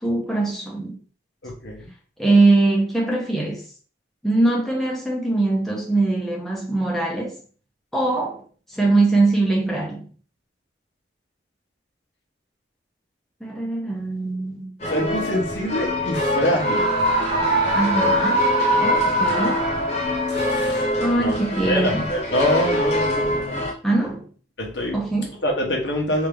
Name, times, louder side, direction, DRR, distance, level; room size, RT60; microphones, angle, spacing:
voice 1, 0.0-1.0 2.2-3.6 4.2-7.4 7.9-8.4 8.7-10.1 13.4-14.7 17.7-18.5 18.8-19.6 21.0-22.1 23.8-24.2 24.9-25.4, right 2 dB, ahead, 0.9 m, -22 dB
voice 2, 1.4-1.9 14.9-16.9 20.3-20.9 21.2-23.7 24.6-25.0 25.4-26.3, equal, 70° left, 1.2 m, -25 dB
sound 1, 14.8-23.7, left 1 dB, 35° left, 1.2 m, -25 dB
Screaming, 16.5-20.2, right 1 dB, 30° right, 0.9 m, -22 dB
3.6 x 2.8 x 3.4 m
head